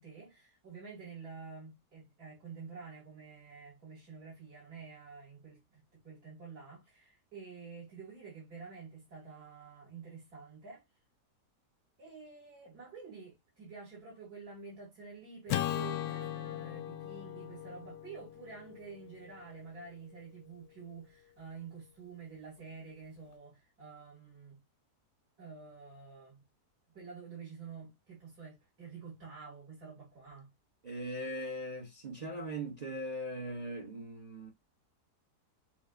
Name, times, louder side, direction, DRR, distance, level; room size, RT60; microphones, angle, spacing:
voice 1, 0.0-10.8 12.0-24.6 25.4-26.4 26.9-30.5, right 5 dB, 70° right, 3.0 m, -49 dB
Acoustic guitar / Strum, 15.5-19.9, left 12 dB, 75° left, 1.1 m, -38 dB
voice 2, 30.8-34.5, right 1 dB, 35° right, 0.7 m, -40 dB
7.2 x 2.6 x 2.5 m
omnidirectional pair, 1.7 m